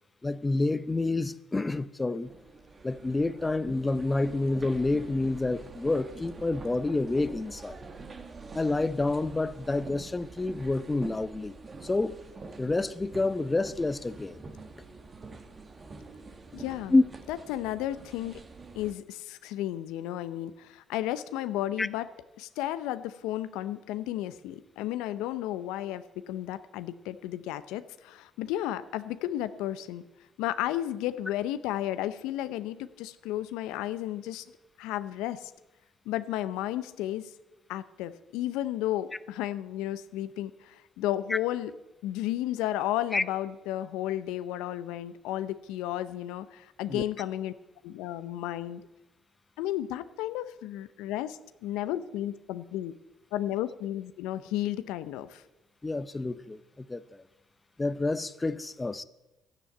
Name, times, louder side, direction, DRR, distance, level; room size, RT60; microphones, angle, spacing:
voice 1, 0.2-2.3 2.8-7.8 8.5-11.5 11.8-12.2 12.6-14.4 16.9-17.0 21.8-21.9 41.3-41.4 43.1-43.2 46.9-47.0 55.8-57.2 57.8-59.0, left 2 dB, 20° left, 0.8 m, -28 dB
sound 1, 2.2-18.9, right 4 dB, 35° right, 1.6 m, -46 dB
voice 2, 16.5-16.9 17.3-18.4 18.8-22.1 22.4-30.0 30.4-34.5 34.8-35.5 36.1-37.3 37.7-41.7 42.0-47.5 47.8-48.8 49.6-53.0 53.3-55.4, left 13 dB, 80° left, 0.7 m, -33 dB
13.0 x 9.9 x 9.2 m
hypercardioid pair, 60°, 0 cm